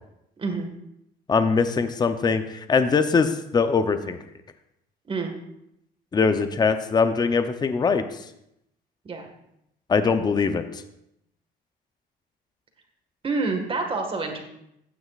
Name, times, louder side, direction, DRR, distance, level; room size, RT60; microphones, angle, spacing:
voice 1, 0.4-0.7 5.1-5.4 9.1-9.3 13.2-14.4, right 3 dB, 30° right, 4 dB, 1.7 m, -27 dB
voice 2, 1.3-4.2 6.1-8.0 9.9-10.8, left 5 dB, 25° left, 9 dB, 0.7 m, -22 dB
14.5 x 9.5 x 2.5 m, 0.80 s
cardioid pair, 110°, 17 cm